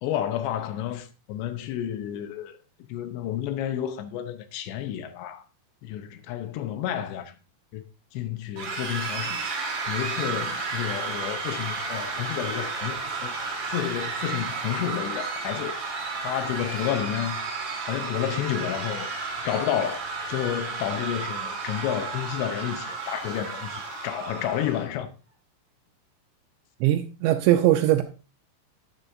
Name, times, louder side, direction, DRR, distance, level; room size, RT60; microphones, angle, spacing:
voice 1, 0.0-2.6 2.9-5.4 5.8-7.3 7.7-7.8 8.1-9.5 9.9-15.8 16.2-17.4 17.9-19.1 19.4-20.0 20.3-25.1, left 11 dB, 80° left, 3.0 m, -30 dB
sound 1, 8.6-24.9, right 4 dB, 40° right, 1.7 m, -32 dB
voice 2, 26.8-28.0, right 13 dB, 80° right, 2.8 m, -20 dB
12.0 x 9.7 x 2.6 m
omnidirectional pair, 5.3 m